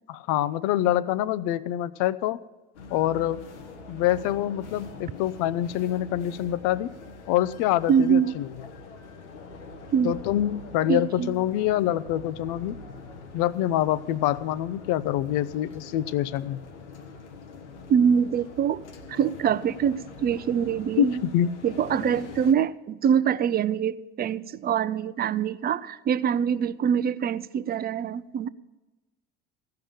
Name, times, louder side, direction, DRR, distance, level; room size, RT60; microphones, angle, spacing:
voice 1, 0.1-2.4 2.9-3.4 3.9-6.9 7.3-8.5 10.0-12.8 13.3-16.6 21.0-21.5 22.0-22.1, left 12 dB, 60° left, 0.6 m, -25 dB
sound 1, 2.7-22.5, left 4 dB, 85° left, 1.1 m, -44 dB
voice 2, 7.9-8.3 9.9-10.2 10.9-11.3 17.9-18.8 19.1-21.2 21.6-28.5, right 8 dB, 30° right, 0.5 m, -24 dB
15.0 x 5.8 x 8.8 m
hypercardioid pair, 70°, 34 cm